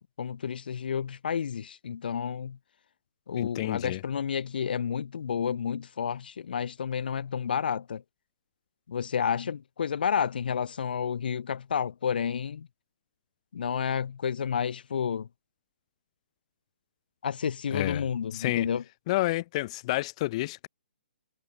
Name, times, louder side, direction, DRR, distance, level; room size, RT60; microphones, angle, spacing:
voice 1, 0.0-2.6 3.3-8.0 8.9-12.7 13.5-15.3 17.2-18.8, left 7 dB, 60° left, 5.3 m, -30 dB
voice 2, 3.4-4.0 17.7-18.0 18.3-18.7 19.1-20.7, left 18 dB, 35° left, 1.9 m, -29 dB
figure-of-eight pair, 135°, 6 cm